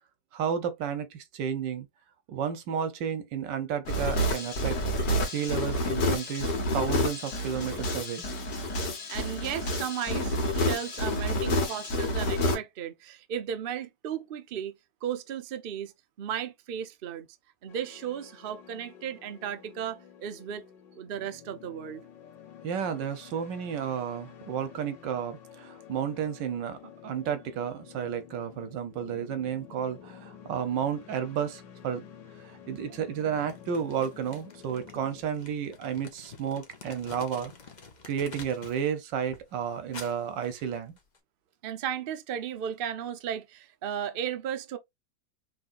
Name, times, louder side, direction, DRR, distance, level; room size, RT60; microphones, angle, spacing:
voice 1, 0.3-1.9 2.3-4.8 5.2-8.2 22.6-32.0 32.4-37.5 38.1-41.0, right 8 dB, 85° right, 1.5 m, -32 dB
sound 1, 3.9-12.6, left 1 dB, 70° left, 1.9 m, -29 dB
voice 2, 9.1-14.7 15.0-15.9 16.2-17.3 17.6-20.6 20.9-22.0 41.6-44.8, right 9 dB, 65° right, 0.5 m, -35 dB
sound 2, 17.7-35.2, left 8 dB, 90° left, 1.7 m, -50 dB
Crumpling crinkling, 33.5-38.9 39.2-41.2, left 4 dB, 35° left, 0.7 m, -49 dB
5.3 x 3.1 x 2.5 m
omnidirectional pair, 1.9 m